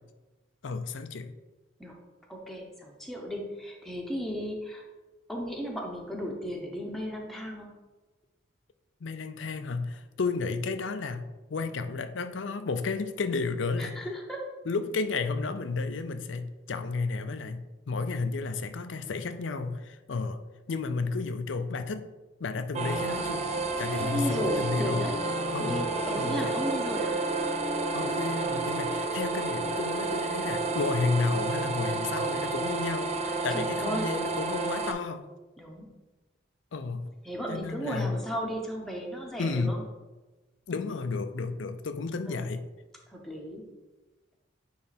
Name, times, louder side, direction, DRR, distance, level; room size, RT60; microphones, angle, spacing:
voice 1, 0.6-1.3 9.0-11.3 11.5-14.0 14.7-20.4 20.7-22.1 22.4-23.5 23.8-25.1 25.5-25.8 26.1-26.6 27.9-35.2 36.7-37.1 37.5-38.2 39.4-39.8 40.7-42.6, left 4 dB, 70° left, 10 dB, 0.5 m, -32 dB
voice 2, 2.3-4.8 5.3-7.7 13.8-14.4 24.0-25.2 25.6-27.2 33.5-34.1 35.6-35.9 37.2-39.8 42.2-42.4 43.1-43.6, equal, ahead, -1 dB, 0.9 m, -35 dB
sound 1, 22.7-34.9, right 3 dB, 35° right, 0.5 m, -31 dB
sound 2, 23.7-32.5, right 3 dB, 80° right, 0.9 m, -39 dB
9.2 x 3.3 x 4.2 m, 1.2 s
head